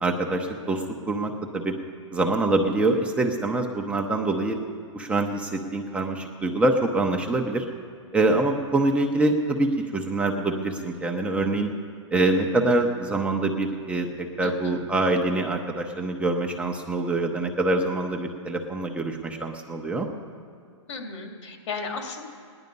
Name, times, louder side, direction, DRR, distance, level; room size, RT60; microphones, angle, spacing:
voice 1, 0.0-1.7 2.1-4.6 4.9-7.6 8.1-11.7 12.1-20.1, right 2 dB, 10° right, 2 dB, 0.9 m, -25 dB
voice 2, 14.4-14.9 20.9-22.2, left 4 dB, 70° left, 3 dB, 2.6 m, -35 dB
17.5 x 11.0 x 5.4 m, 2.2 s
hypercardioid pair, 135°, 16 cm